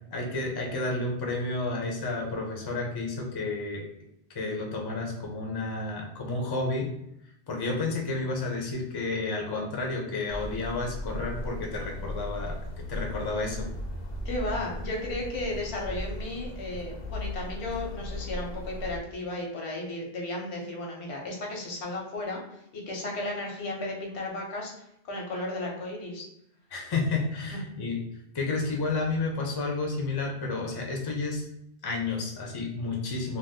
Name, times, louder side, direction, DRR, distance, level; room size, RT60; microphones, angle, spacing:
voice 1, 0.1-3.8 4.3-6.9 7.5-12.6 12.9-13.7 26.7-28.0 28.3-31.5 31.8-33.4, left 3 dB, 30° left, 0 dB, 0.5 m, -31 dB
sound 1, 10.3-19.0, left 1 dB, 70° left, 0.8 m, -37 dB
voice 2, 14.2-24.7 25.0-26.2, left 2 dB, 90° left, 0 dB, 1.1 m, -34 dB
2.5 x 2.3 x 3.5 m, 0.79 s
omnidirectional pair, 1.1 m